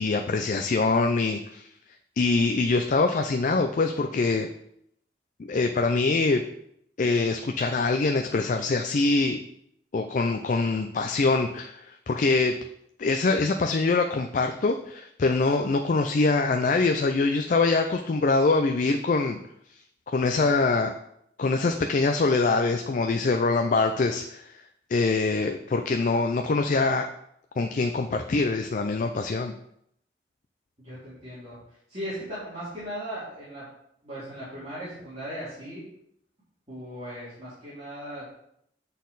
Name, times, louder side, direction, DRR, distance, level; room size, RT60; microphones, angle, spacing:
voice 1, 0.0-1.7 2.2-4.5 5.4-6.4 7.0-9.4 9.9-12.6 13.0-19.4 20.1-20.9 21.4-24.5 24.9-27.1 27.6-29.5, left 3 dB, 45° left, 5 dB, 0.4 m, -24 dB
voice 2, 30.8-31.6 31.9-33.6 34.0-35.9 36.7-38.2, equal, 35° right, -12 dB, 2.6 m, -37 dB
8.3 x 4.1 x 4.0 m, 0.74 s
head